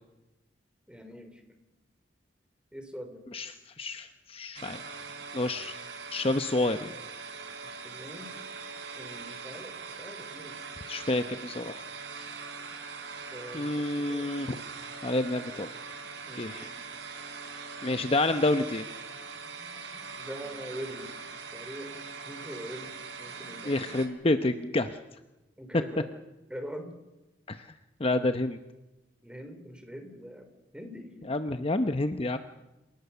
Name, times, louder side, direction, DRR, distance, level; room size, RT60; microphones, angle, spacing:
voice 1, 0.9-1.4 2.7-3.3 7.7-8.3 9.0-10.6 13.3-14.3 16.2-16.5 20.2-21.1 21.5-21.9 22.2-24.0 25.6-26.1 26.5-26.9 29.2-30.5 30.7-31.3, equal, 5° right, 7 dB, 3.4 m, -43 dB
voice 2, 3.3-4.8 5.3-5.7 6.1-6.9 10.9-11.8 12.2-12.3 13.5-14.6 15.0-15.7 16.4-16.7 17.8-18.8 23.6-25.0 27.5-27.7 28.0-28.6 31.3-32.4, left 2 dB, 30° left, 9 dB, 0.8 m, -29 dB
sound 1, 4.6-24.1, right 4 dB, 70° right, 3.9 m, -42 dB
28.5 x 18.5 x 6.9 m, 1.0 s
head